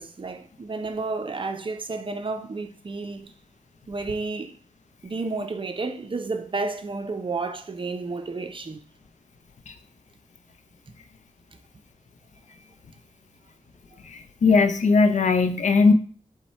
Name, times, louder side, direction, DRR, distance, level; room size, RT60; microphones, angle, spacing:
voice 1, 0.0-3.3 3.9-4.6 5.0-8.8, right 3 dB, 40° right, 0.5 m, -31 dB
voice 2, 14.1-15.9, left 4 dB, 70° left, 0.5 m, -19 dB
5.4 x 2.1 x 4.3 m
cardioid pair, 60°, 13 cm